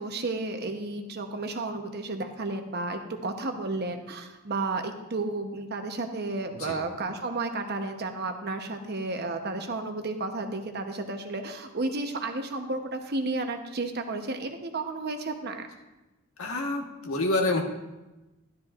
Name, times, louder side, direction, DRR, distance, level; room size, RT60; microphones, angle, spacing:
voice 1, 0.0-15.7, right 2 dB, 50° right, 5 dB, 0.9 m, -32 dB
voice 2, 16.4-17.6, left 2 dB, 75° left, 1 dB, 1.4 m, -27 dB
12.5 x 12.0 x 2.5 m, 1.1 s
head